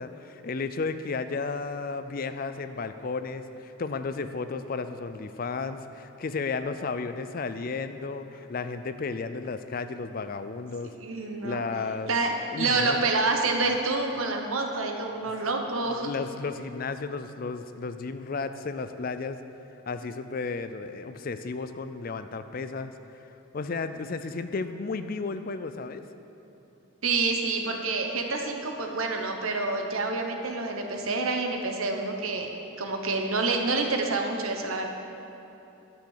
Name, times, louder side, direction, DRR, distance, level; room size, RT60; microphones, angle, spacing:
voice 1, 0.0-10.9 11.4-12.2 12.5-13.0 15.2-15.3 15.9-19.4 19.9-22.9 23.5-26.0, left 4 dB, 45° left, 10 dB, 0.4 m, -33 dB
voice 2, 11.0-11.6 12.1-16.1 27.0-34.9, right 3 dB, 80° right, 3 dB, 1.1 m, -28 dB
11.5 x 6.2 x 6.5 m, 3.0 s
head